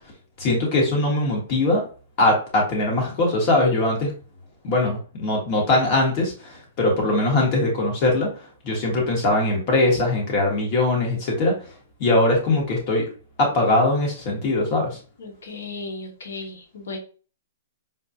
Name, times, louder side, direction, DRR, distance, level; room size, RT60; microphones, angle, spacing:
voice 1, 0.4-1.8 2.2-4.1 4.6-11.7 12.0-13.1 13.4-15.0, left 2 dB, 35° left, -1 dB, 1.5 m, -21 dB
voice 2, 15.2-17.0, left 3 dB, 75° left, 2 dB, 1.0 m, -35 dB
4.1 x 2.4 x 2.7 m, 0.38 s
hypercardioid pair, 155°, 0 cm